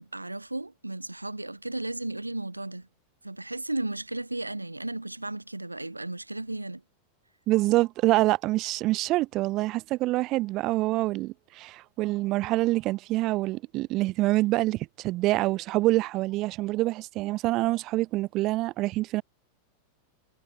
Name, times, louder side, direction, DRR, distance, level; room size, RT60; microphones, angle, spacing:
voice 1, 0.0-2.9 3.2-6.8, right 2 dB, 85° right, 1.2 m, -34 dB
voice 2, 7.5-19.2, right 18 dB, 40° right, 1.5 m, -26 dB
figure-of-eight pair, 90°, 0 cm